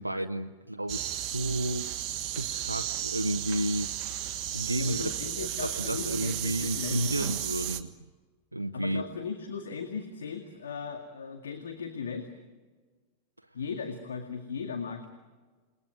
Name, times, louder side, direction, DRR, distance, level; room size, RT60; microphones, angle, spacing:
voice 1, 0.0-1.9 2.3-3.9 4.5-5.1 5.4-7.9 8.5-9.0, right 1 dB, 85° right, 7 dB, 0.7 m, -32 dB
sound 1, 0.9-7.8, right 11 dB, 40° right, 1.4 m, -34 dB
voice 2, 4.7-7.0 8.7-12.3 13.5-15.1, left 5 dB, 65° left, 4 dB, 2.1 m, -37 dB
29.0 x 20.0 x 9.2 m, 1.4 s
figure-of-eight pair, 90°, 0 cm